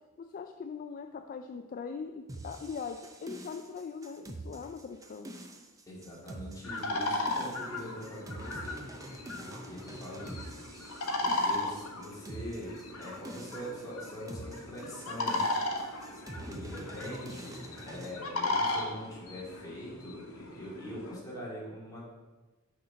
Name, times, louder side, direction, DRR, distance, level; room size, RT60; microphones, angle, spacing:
voice 1, 0.2-5.3, left 5 dB, 40° left, 6 dB, 0.3 m, -41 dB
sound 1, 2.3-18.1, right 1 dB, 15° right, 0.6 m, -46 dB
voice 2, 5.9-8.9 9.4-10.6 11.2-15.5 16.1-22.1, equal, 15° left, -6 dB, 2.2 m, -43 dB
sound 2, 6.6-21.2, left 2 dB, 75° left, 0.9 m, -36 dB
6.6 x 4.3 x 5.6 m, 1.2 s
head